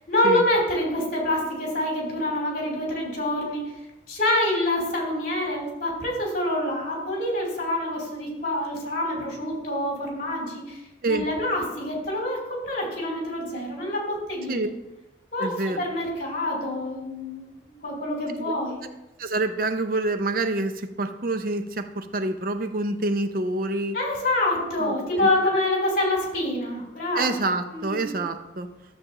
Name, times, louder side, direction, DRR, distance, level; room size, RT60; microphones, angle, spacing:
voice 1, 0.1-3.7 4.1-10.8 11.1-14.7 15.3-17.4 17.8-18.8 23.9-27.4 27.7-28.1, left 1 dB, 50° left, -2 dB, 3.3 m, -26 dB
voice 2, 15.4-15.8 18.8-18.9 19.2-24.0 24.8-25.6 27.1-28.7, right 2 dB, 50° right, 8 dB, 0.6 m, -27 dB
12.5 x 7.4 x 3.0 m, 0.96 s
head